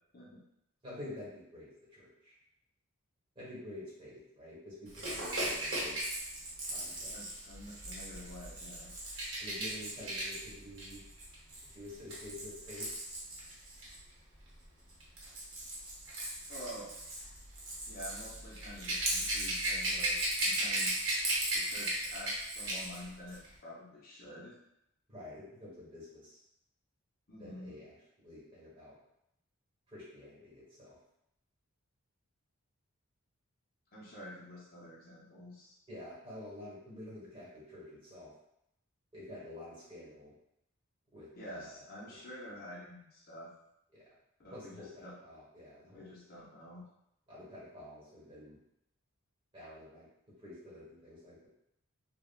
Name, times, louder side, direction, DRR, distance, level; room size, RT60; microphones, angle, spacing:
voice 1, 0.8-2.4 3.3-6.0 6.7-7.2 9.4-11.0 11.7-12.9 25.1-26.4 27.4-28.0 28.2-28.9 29.9-31.0 35.9-38.3 39.1-40.3 41.1-42.2 44.5-46.2 47.3-48.6 49.5-50.1 50.4-51.5, left 1 dB, 25° right, -7 dB, 1.0 m, -49 dB
Rattle / Rattle (instrument), 4.9-14.0 14.9-23.0 23.3-23.5, right 1 dB, 60° right, 0.8 m, -36 dB
voice 2, 7.1-8.9 16.5-16.9 17.9-21.1 21.5-24.6 27.3-27.7 33.9-35.8 41.3-43.5 44.4-45.1 45.9-46.8, left 1 dB, 40° left, -5 dB, 0.6 m, -48 dB
3.5 x 2.0 x 2.2 m, 0.79 s
head